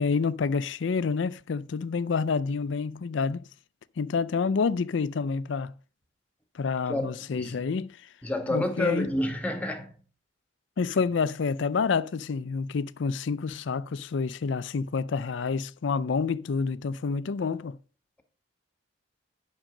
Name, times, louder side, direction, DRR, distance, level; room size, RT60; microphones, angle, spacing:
voice 1, 0.0-3.4 4.0-5.7 6.5-8.0 8.5-9.1 10.8-17.8, left 5 dB, 70° left, 0.4 m, -28 dB
voice 2, 6.9-7.6 8.2-9.9, left 1 dB, 5° left, 1.3 m, -29 dB
9.0 x 6.3 x 5.0 m
head